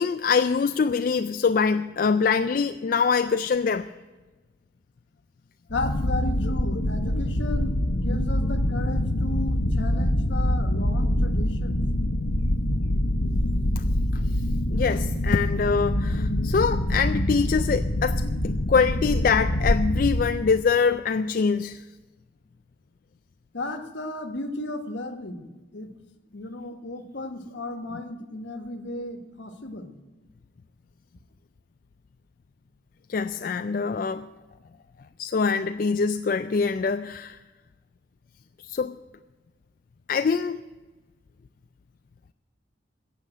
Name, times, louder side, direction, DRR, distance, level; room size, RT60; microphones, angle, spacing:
voice 1, 0.0-3.9 13.8-13.9 14.7-21.8 33.1-34.3 35.2-37.4 38.7-39.0 40.1-40.6, left 5 dB, 45° left, 0.3 m, -24 dB
sound 1, 5.7-20.3, left 1 dB, 85° left, 1.1 m, -25 dB
voice 2, 5.7-11.9 23.5-25.4 25.7-25.9 26.3-29.9, left 2 dB, 70° left, 1.3 m, -34 dB
15.5 x 7.1 x 9.0 m
head